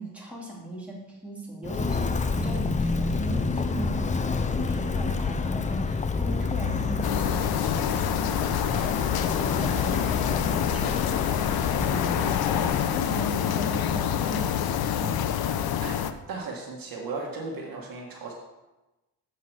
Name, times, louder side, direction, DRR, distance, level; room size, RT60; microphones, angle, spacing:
voice 1, 0.0-8.8 9.3-11.0 11.7-15.7, right 1 dB, 5° right, -4 dB, 2.7 m, -38 dB
Walk footsteps, 1.6-12.9, left 4 dB, 20° left, 0.5 m, -28 dB
sound 1, 7.0-16.1, left 9 dB, 65° left, 0.7 m, -27 dB
voice 2, 15.8-18.3, right 3 dB, 55° right, -1 dB, 1.7 m, -36 dB
7.7 x 5.6 x 6.4 m, 1.1 s
cardioid pair, 110°, 41 cm